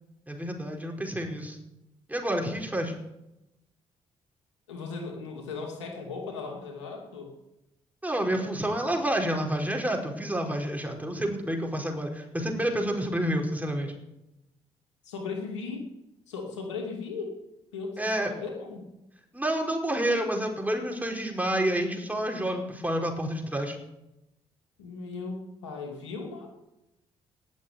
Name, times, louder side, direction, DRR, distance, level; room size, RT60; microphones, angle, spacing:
voice 1, 0.3-1.6 2.1-2.9 8.0-13.9 18.0-18.3 19.3-23.8, right 1 dB, 10° right, 2 dB, 5.0 m, -29 dB
voice 2, 4.7-7.3 15.0-15.9 16.3-17.3 17.7-18.9 24.8-26.5, left 4 dB, 80° left, 1 dB, 2.7 m, -37 dB
18.5 x 7.4 x 9.5 m, 0.91 s
figure-of-eight pair, 40°, 15 cm